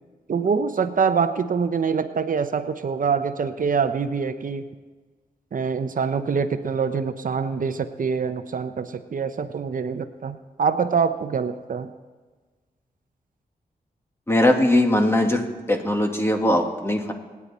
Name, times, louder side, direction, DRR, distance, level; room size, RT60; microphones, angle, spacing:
voice 1, 0.3-4.6 5.5-11.9, right 6 dB, 60° right, 10 dB, 0.7 m, -25 dB
voice 2, 14.3-15.4 15.7-17.1, left 1 dB, 15° left, 3 dB, 2.1 m, -20 dB
26.0 x 9.6 x 4.3 m, 1.4 s
cardioid pair, 80°, 16 cm